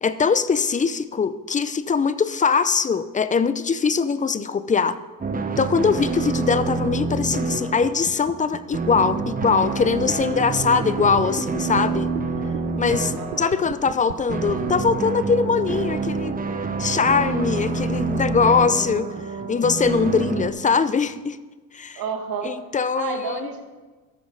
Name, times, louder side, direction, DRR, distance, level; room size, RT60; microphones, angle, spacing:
voice 1, 0.0-5.0 5.6-12.1 12.8-16.4 16.8-19.1 19.5-21.4 21.7-22.0 22.4-23.5, left 5 dB, 20° left, 14 dB, 0.5 m, -22 dB
sound 1, 5.2-20.5, right 4 dB, 20° right, 1.0 m, -27 dB
sound 2, 9.2-15.1, right 18 dB, 85° right, 0.6 m, -36 dB
voice 2, 13.1-13.6 21.9-22.5 23.0-23.6, right 6 dB, 60° right, 4 dB, 1.7 m, -30 dB
13.0 x 6.2 x 5.3 m, 1.3 s
supercardioid pair, 90°, 40 cm